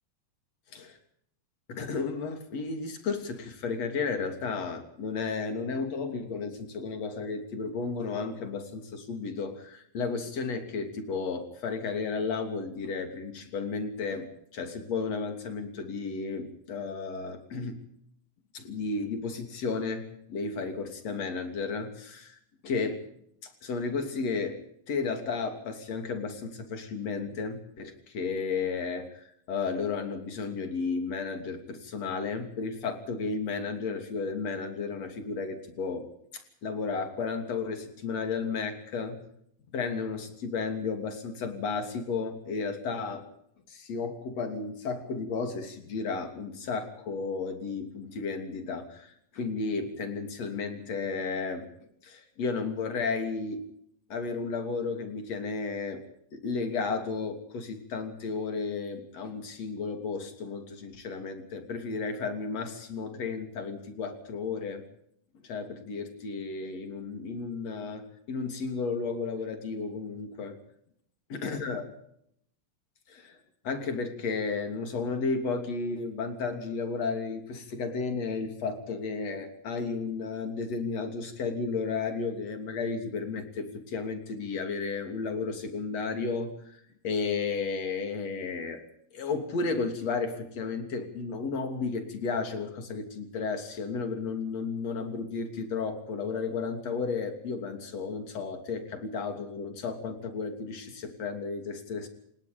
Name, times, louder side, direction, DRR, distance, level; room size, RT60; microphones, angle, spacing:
voice 1, 1.7-17.8 18.5-23.0 23.4-24.6 24.9-39.2 39.7-43.3 43.7-51.7 52.0-53.7 54.1-56.0 56.3-64.8 65.4-70.6 71.3-71.9 73.1-73.4 73.6-88.8 89.1-102.1, left 4 dB, 45° left, 6 dB, 4.0 m, -33 dB
29.0 x 18.5 x 5.3 m, 0.71 s
omnidirectional pair, 4.3 m